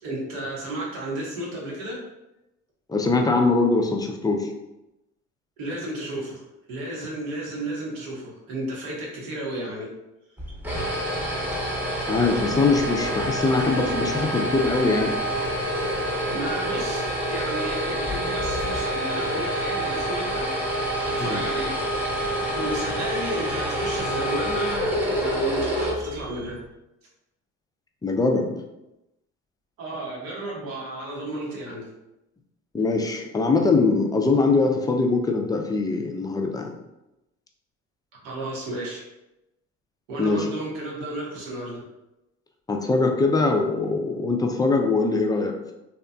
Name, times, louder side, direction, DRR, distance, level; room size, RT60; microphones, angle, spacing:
voice 1, 0.0-2.0 5.6-6.4 6.7-9.9 16.3-21.8 22.6-26.6 29.8-31.9 38.2-39.1 40.1-41.8, right 1 dB, 80° right, -3 dB, 0.9 m, -33 dB
voice 2, 2.9-4.5 12.1-15.2 21.2-21.4 28.0-28.5 32.7-36.7 40.2-40.5 42.7-45.7, left 3 dB, 10° left, 3 dB, 0.3 m, -22 dB
sound 1, 10.4-26.6, right 1 dB, 5° right, 0.7 m, -27 dB
2.8 x 2.3 x 2.3 m, 0.93 s
hypercardioid pair, 55°, 37 cm